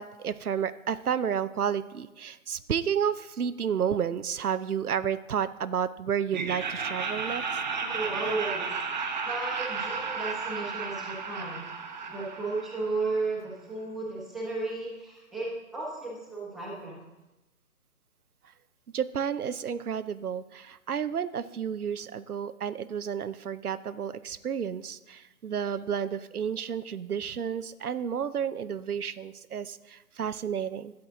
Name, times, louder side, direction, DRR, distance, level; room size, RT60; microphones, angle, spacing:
voice 1, 0.0-7.4 18.9-30.9, right 8 dB, 90° right, 14 dB, 0.7 m, -31 dB
Laughter, 6.3-13.3, right 5 dB, 30° right, 0.9 m, -33 dB
voice 2, 7.8-8.7 9.2-11.7 12.0-17.0, right 3 dB, ahead, -5 dB, 1.0 m, -34 dB
12.0 x 8.5 x 3.7 m, 1.0 s
figure-of-eight pair, 145°, 43 cm